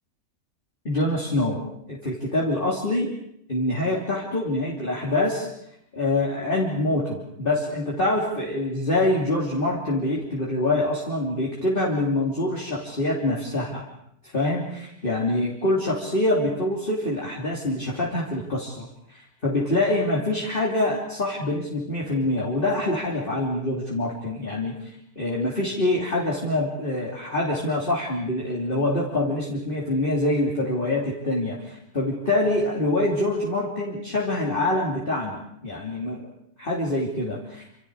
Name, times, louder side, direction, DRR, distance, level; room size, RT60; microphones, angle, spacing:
voice 1, 0.9-3.1 3.5-5.5 5.9-13.8 14.2-24.7 25.2-36.2 36.6-37.7, left 1 dB, 30° left, -4 dB, 3.4 m, -25 dB
27.5 x 27.5 x 4.9 m, 0.75 s
omnidirectional pair, 1.7 m